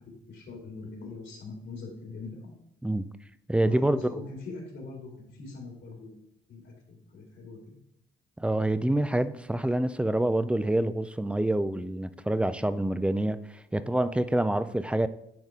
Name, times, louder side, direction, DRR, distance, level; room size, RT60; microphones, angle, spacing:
voice 1, 0.3-2.6 3.6-6.1 6.5-7.8, left 3 dB, 70° left, 2.5 m, -42 dB
voice 2, 3.5-4.2 8.4-15.1, right 1 dB, 5° right, 0.4 m, -27 dB
10.5 x 4.0 x 3.6 m
cardioid pair, 90°, 20 cm